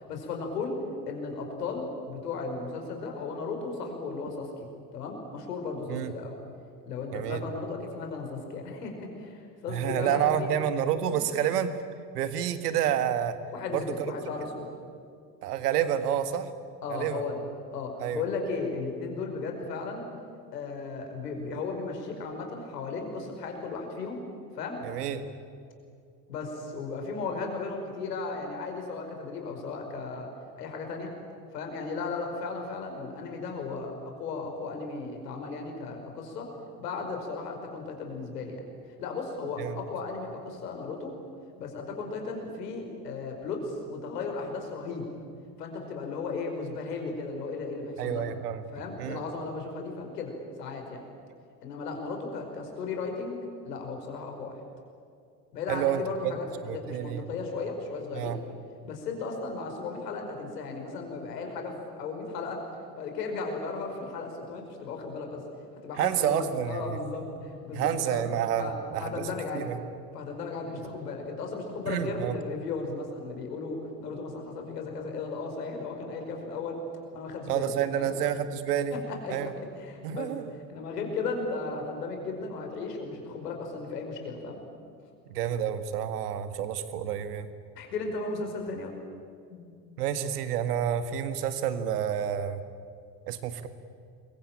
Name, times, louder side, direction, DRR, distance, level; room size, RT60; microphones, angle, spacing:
voice 1, 0.1-0.8 1.1-4.7 4.9-6.3 6.9-10.5 11.1-11.2 13.5-14.7 16.8-17.4 17.7-20.1 20.5-24.2 24.5-24.8 26.3-30.3 30.6-31.1 31.5-36.5 36.8-38.6 39.0-41.1 41.6-45.0 45.6-48.2 48.7-51.0 51.6-54.6 55.5-58.3 58.8-62.6 63.0-65.4 65.8-68.3 68.6-69.8 70.1-76.8 77.1-78.1 78.9-79.5 79.8-80.3 80.7-84.6 87.8-88.9 89.5-89.8, left 4 dB, 70° left, 3 dB, 5.3 m, -35 dB
voice 2, 7.1-7.4 9.7-11.7 12.1-13.3 13.7-14.1 15.4-16.5 16.9-17.2 18.0-18.2 24.8-25.2 39.6-39.8 48.0-48.6 49.0-49.2 55.7-56.3 56.6-57.3 58.1-58.4 66.0-67.0 67.7-69.8 71.9-72.4 77.5-79.0 79.3-79.5 80.0-80.4 85.3-87.5 90.0-92.6 93.3-93.7, right 9 dB, 65° right, 10 dB, 1.9 m, -29 dB
27.5 x 23.5 x 9.0 m, 2.4 s
figure-of-eight pair, 65°, 50 cm